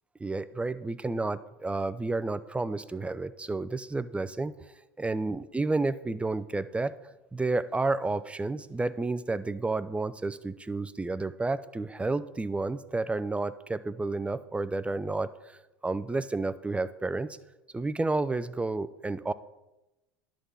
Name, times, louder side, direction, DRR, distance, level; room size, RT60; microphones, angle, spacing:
voice 1, 0.2-4.5 5.0-6.9 7.3-17.3 17.7-19.3, right 3 dB, 10° right, 15 dB, 0.5 m, -31 dB
11.0 x 3.8 x 7.1 m, 1.0 s
supercardioid pair, 95°, 11 cm